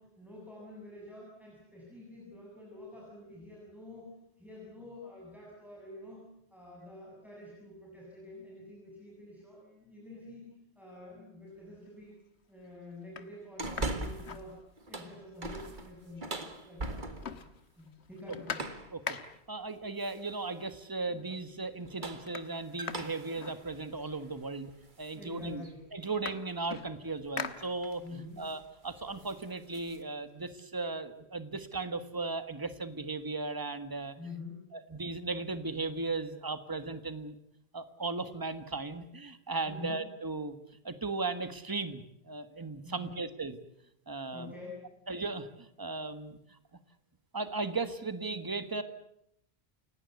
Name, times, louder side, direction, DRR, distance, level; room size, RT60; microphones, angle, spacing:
voice 1, 0.0-4.1 4.4-6.2 6.5-10.5 10.8-12.1 12.5-14.6 14.9-17.5 17.8-18.7 25.1-25.8 28.0-28.5 34.2-34.7 39.7-40.0 42.8-43.2 44.3-44.9, left 2 dB, ahead, -5 dB, 7.8 m, -47 dB
sound 1, 11.6-12.1 12.6-12.7 13.0-15.1 15.4-15.5 15.8-16.6 16.9-19.6 20.6-20.7 21.0-21.5 21.8-24.2 25.0-25.1 25.4-28.2 28.6-30.4, left 6 dB, 90° left, 1.6 m, -44 dB
sound 2, 13.6-14.4 14.8-17.5 18.5-19.0 20.0-20.4 21.7-25.2 25.6-25.7 27.3-27.5 27.8-28.1 28.4-28.6 29.0-30.0, right 2 dB, 50° right, 2.0 m, -41 dB
voice 2, 19.5-24.7 25.0-25.6 25.9-28.0 28.4-34.1 34.7-37.3 37.7-40.5 40.8-43.6 44.1-44.5 45.1-46.4 47.3-48.8, right 3 dB, 20° right, 11 dB, 1.5 m, -36 dB
29.5 x 17.0 x 8.3 m, 0.78 s
omnidirectional pair, 1.1 m